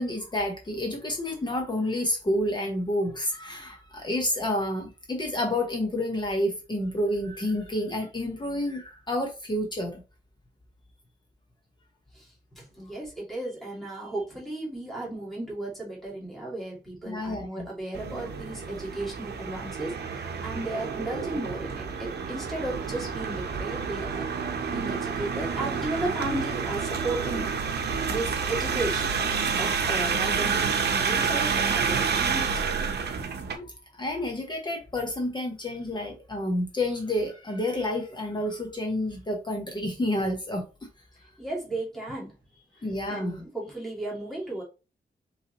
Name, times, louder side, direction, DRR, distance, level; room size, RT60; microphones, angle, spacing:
voice 1, 0.0-10.0 17.1-17.7 33.6-33.7 33.9-40.6 42.8-43.4, left 1 dB, 25° left, 2 dB, 0.9 m, -29 dB
voice 2, 12.1-27.5 28.1-32.7 39.8-39.9 41.4-44.6, right 2 dB, ahead, -4 dB, 2.1 m, -35 dB
sound 1, 17.9-33.6, right 6 dB, 70° right, 0.8 m, -29 dB
5.4 x 3.2 x 2.9 m, 0.31 s
wide cardioid pair, 160°, 17 cm